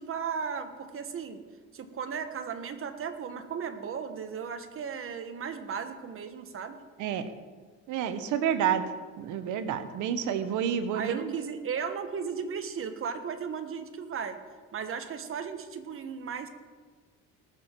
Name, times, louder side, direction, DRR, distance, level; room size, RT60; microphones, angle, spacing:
voice 1, 0.0-1.4 1.7-6.8 10.9-14.4 14.7-16.5, right 6 dB, 45° right, 8 dB, 1.4 m, -36 dB
voice 2, 7.9-8.8 9.2-11.3, right 8 dB, 85° right, 10 dB, 1.1 m, -29 dB
19.0 x 7.0 x 4.6 m, 1.5 s
cardioid pair, 105°, 30 cm